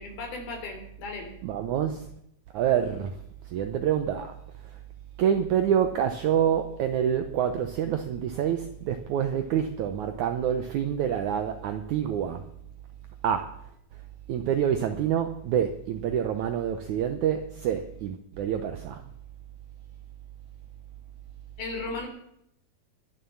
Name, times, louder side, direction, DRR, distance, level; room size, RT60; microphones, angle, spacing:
voice 1, 0.0-1.3 21.6-22.1, left 3 dB, 75° left, 5.3 m, -36 dB
voice 2, 1.4-2.1 2.5-3.1 3.5-4.3 5.2-12.5 13.2-13.5 14.3-19.0, right 9 dB, 75° right, 1.8 m, -27 dB
21.5 x 7.2 x 7.1 m
omnidirectional pair, 4.4 m